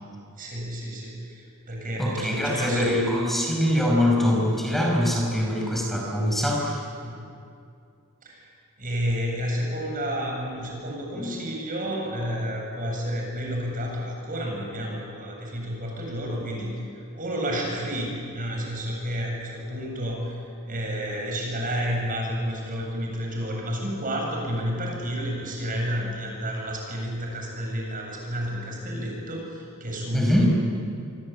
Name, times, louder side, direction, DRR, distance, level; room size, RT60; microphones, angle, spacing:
voice 1, 0.4-2.9 7.0-7.2 8.2-8.5 8.8-16.9 17.1-30.5, equal, 40° right, 0 dB, 7.8 m, -30 dB
voice 2, 2.0-6.8 11.1-11.3 30.1-30.5, left 1 dB, ahead, -1 dB, 5.6 m, -23 dB
27.5 x 24.5 x 8.8 m, 2.4 s
head